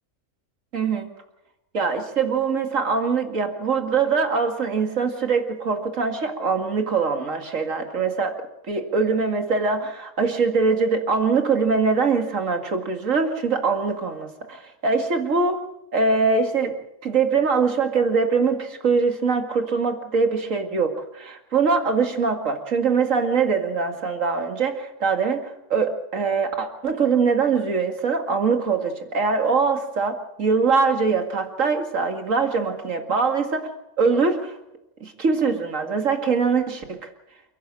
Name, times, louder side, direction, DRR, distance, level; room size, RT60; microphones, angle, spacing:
voice 1, 0.7-1.1 1.7-8.4 8.7-15.6 15.9-16.7 17.0-33.7 34.0-34.6 35.0-37.1, right 4 dB, 75° right, 5 dB, 2.5 m, -23 dB
29.5 x 11.0 x 8.9 m, 0.87 s
omnidirectional pair, 1.3 m